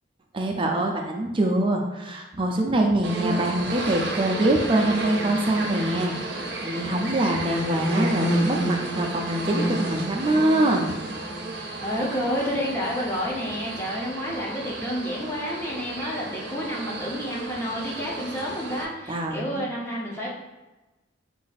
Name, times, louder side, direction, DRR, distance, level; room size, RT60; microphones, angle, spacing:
voice 1, 0.3-10.9 19.1-19.8, right 1 dB, 25° right, 2 dB, 0.4 m, -24 dB
sound 1, 3.0-18.9, right 1 dB, 60° right, 0.7 m, -31 dB
voice 2, 11.8-20.3, equal, 10° left, -5 dB, 0.8 m, -30 dB
4.0 x 2.6 x 4.0 m, 1.1 s
head